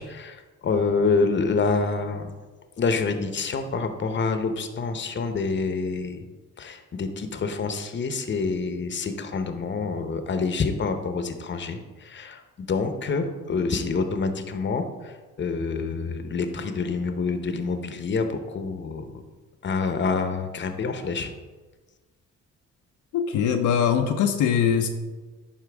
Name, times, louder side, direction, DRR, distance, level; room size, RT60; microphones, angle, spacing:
voice 1, 0.0-2.3 2.8-6.2 6.6-19.2 19.6-21.3, left 4 dB, 40° left, 7 dB, 0.8 m, -27 dB
voice 2, 23.1-24.9, left 8 dB, 75° left, 5 dB, 0.6 m, -22 dB
11.0 x 4.5 x 3.4 m, 1.3 s
cardioid pair, 90°, 30 cm